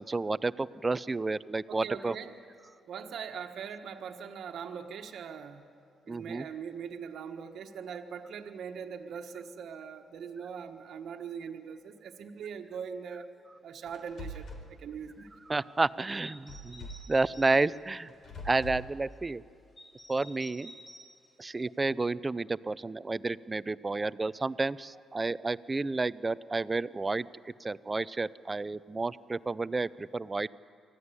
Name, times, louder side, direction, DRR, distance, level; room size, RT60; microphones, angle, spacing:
voice 1, 0.0-2.1 6.1-6.4 15.5-18.1 18.4-19.4 20.1-20.7 21.4-30.5, right 3 dB, 25° right, 18 dB, 0.5 m, -31 dB
voice 2, 1.7-2.4 2.9-5.7 6.1-13.3 13.6-15.3, right 7 dB, 70° right, 5 dB, 1.4 m, -41 dB
sound 1, 13.9-14.7 16.5-17.2 18.1-18.9, equal, 55° left, 3.6 m, -43 dB
sound 2, 16.2-17.5 19.8-21.1, equal, 30° left, 7.3 m, -50 dB
24.5 x 15.0 x 9.7 m, 2.4 s
cardioid pair, 90°, 0 cm